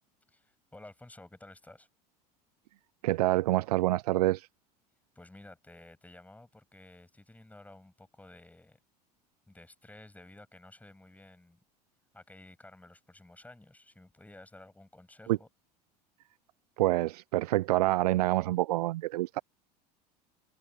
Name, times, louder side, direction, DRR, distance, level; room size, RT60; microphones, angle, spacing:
voice 1, 0.3-1.9 5.2-8.8 9.5-11.6 12.1-15.5, left 2 dB, 5° left, 7.2 m, -53 dB
voice 2, 3.0-4.5 15.3-15.4 16.8-19.4, right 17 dB, 70° right, 0.6 m, -27 dB
hypercardioid pair, 75°, 21 cm